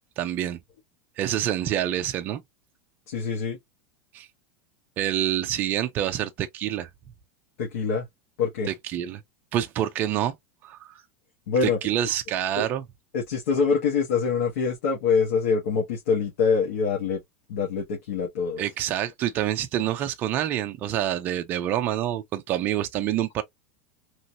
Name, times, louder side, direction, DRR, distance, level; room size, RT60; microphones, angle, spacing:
voice 1, 0.2-0.6 1.2-2.4 4.1-4.3 5.0-6.9 8.7-9.2 9.5-10.3 10.6-11.0 11.6-12.8 18.6-23.4, right 11 dB, 25° right, 0.4 m, -27 dB
voice 2, 3.1-3.6 7.6-8.0 8.4-8.7 11.5-11.8 12.6-12.7 13.1-17.2 17.5-18.6, left 5 dB, 70° left, 1.1 m, -25 dB
3.0 x 2.6 x 2.7 m
supercardioid pair, 175°, 8 cm